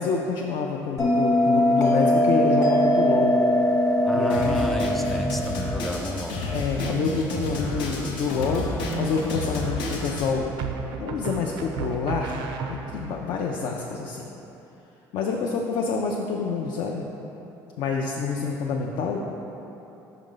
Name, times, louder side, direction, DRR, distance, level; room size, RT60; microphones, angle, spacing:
voice 1, 0.0-3.3 4.1-4.8 6.5-10.6 11.0-12.4 12.7-14.3 15.1-17.1 17.8-19.2, left 4 dB, 70° left, 0 dB, 0.4 m, -27 dB
Bell, 1.0-6.1, left 1 dB, 35° left, 0.9 m, -21 dB
voice 2, 4.0-6.4, equal, ahead, 4 dB, 0.4 m, -32 dB
Drum kit, 4.3-10.3, left 2 dB, 90° left, 0.8 m, -31 dB
sound 1, 7.9-8.5 10.6-13.2, right 6 dB, 75° right, 0.4 m, -34 dB
5.4 x 4.9 x 3.8 m, 3.0 s
cardioid pair, 115°, 8 cm